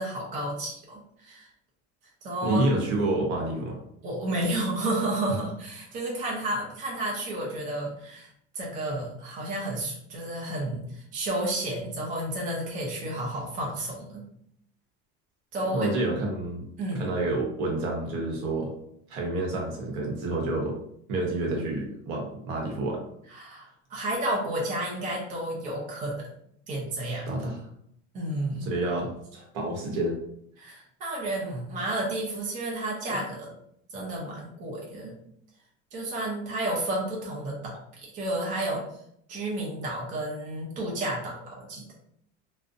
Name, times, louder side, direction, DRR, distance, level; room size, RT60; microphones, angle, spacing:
voice 1, 0.0-1.5 2.2-2.6 4.0-8.3 8.5-14.2 15.5-15.9 16.8-17.1 23.3-26.3 26.7-27.2 28.1-28.7 30.6-33.5 33.9-35.1 35.9-37.7 38.1-38.8 39.3-41.8, right 1 dB, 25° right, -3 dB, 0.5 m, -31 dB
voice 2, 2.4-3.8 15.7-16.7 16.9-18.7 19.1-20.8 21.1-23.0 27.3-27.6 28.6-30.2, right 2 dB, 80° right, 0 dB, 0.9 m, -28 dB
2.4 x 2.0 x 2.5 m, 0.70 s
cardioid pair, 170°, 31 cm